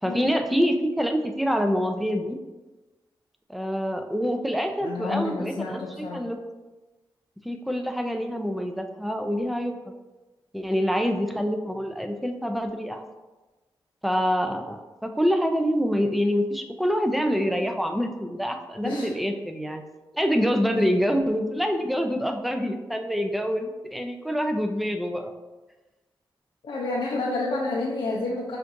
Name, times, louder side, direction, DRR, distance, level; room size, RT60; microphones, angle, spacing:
voice 1, 0.0-2.4 3.5-6.4 7.4-9.8 10.5-13.0 14.0-19.8 20.1-25.3, equal, ahead, 5 dB, 0.4 m, -26 dB
voice 2, 4.8-6.2 18.8-19.1 20.7-20.8 26.6-28.6, left 2 dB, 75° left, -4 dB, 0.5 m, -29 dB
5.7 x 2.5 x 2.6 m, 1.2 s
cardioid pair, 60°, 9 cm